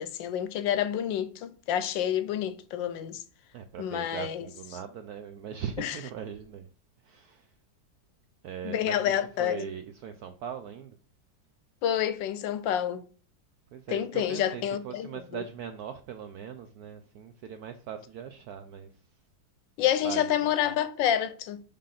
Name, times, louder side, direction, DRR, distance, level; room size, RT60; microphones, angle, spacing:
voice 1, 0.0-3.2 3.8-4.5 5.8-6.0 8.6-9.7 11.8-13.1 13.9-15.2 19.8-21.6, left 10 dB, 75° left, 1.2 m, -28 dB
voice 2, 3.5-6.7 7.0-7.5 8.4-11.0 13.7-18.9 20.0-20.8, right 8 dB, 75° right, 0.9 m, -40 dB
5.1 x 3.6 x 5.7 m
omnidirectional pair, 2.2 m